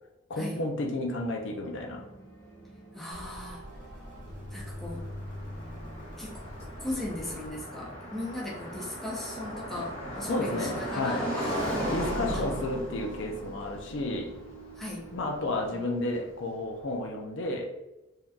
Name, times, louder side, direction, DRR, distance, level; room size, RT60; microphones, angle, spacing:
voice 1, 0.3-2.1 10.3-11.3 11.9-14.3 15.1-17.7, left 2 dB, 65° left, 2 dB, 0.5 m, -32 dB
sound 1, 1.1-15.9, equal, 80° left, 1.0 m, -48 dB
voice 2, 2.9-3.6 4.5-5.0 6.2-6.4 6.8-12.0 12.3-12.4 14.8-15.0, left 1 dB, ahead, -5 dB, 0.6 m, -37 dB
sound 2, 3.1-7.5, equal, 40° right, 0.8 m, -46 dB
Car passing by, 4.3-16.3, equal, 35° left, 1.1 m, -37 dB
3.6 x 2.7 x 2.3 m, 0.97 s
head